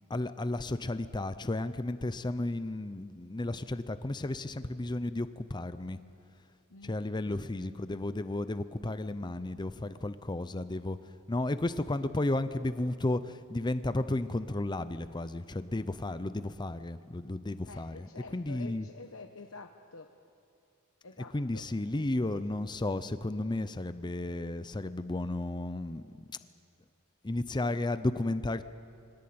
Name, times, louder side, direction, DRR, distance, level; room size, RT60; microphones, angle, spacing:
voice 1, 0.1-6.0 6.8-11.0 11.3-13.2 13.5-18.1 18.3-18.9 21.3-26.0 27.2-28.6, left 2 dB, 20° left, 12 dB, 0.6 m, -33 dB
voice 2, 17.7-20.1 21.0-21.7, left 4 dB, 70° left, 4 dB, 1.1 m, -48 dB
22.0 x 18.5 x 8.7 m, 2.5 s
head